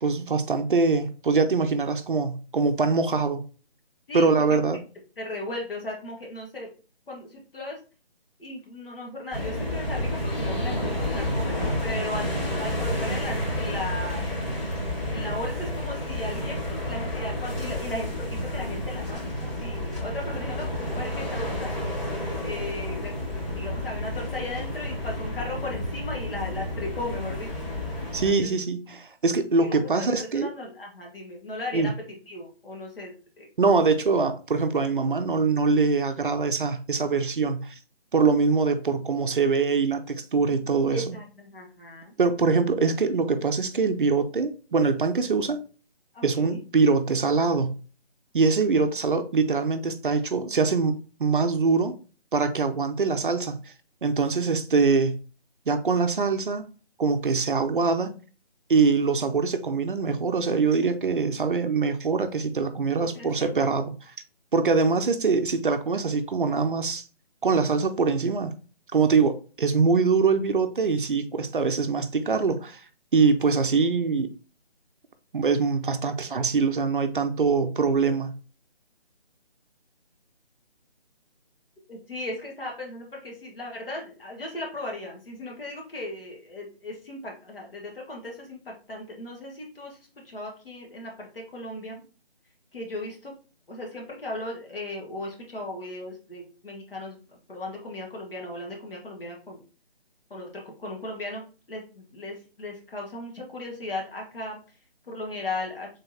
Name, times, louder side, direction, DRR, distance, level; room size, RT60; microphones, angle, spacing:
voice 1, 0.0-3.4 4.1-4.8 28.1-30.5 31.7-31.9 33.6-37.7 38.1-41.1 42.2-45.6 46.2-47.8 48.3-51.9 52.3-53.6 54.0-55.2 55.7-56.6 57.0-58.1 58.7-63.9 64.5-67.0 67.4-68.5 68.9-72.8 73.1-74.3 75.3-78.4, right 4 dB, 55° right, 0.5 m, -23 dB
voice 2, 5.2-6.7 7.1-7.8 8.4-14.2 15.1-18.3 18.5-20.7 20.9-21.7 22.4-27.5 28.2-28.6 29.6-31.9 32.3-33.5 40.9-42.1 46.1-46.6 63.0-63.5 64.8-65.0 81.9-90.0 90.3-92.0 92.7-93.3 93.7-97.2 97.5-99.6 100.3-104.6 105.1-105.9, left 1 dB, 60° left, 1.6 m, -36 dB
sound 1, 9.3-28.3, left 1 dB, 40° left, 2.1 m, -30 dB
3.7 x 3.5 x 2.7 m
figure-of-eight pair, 160°, 31 cm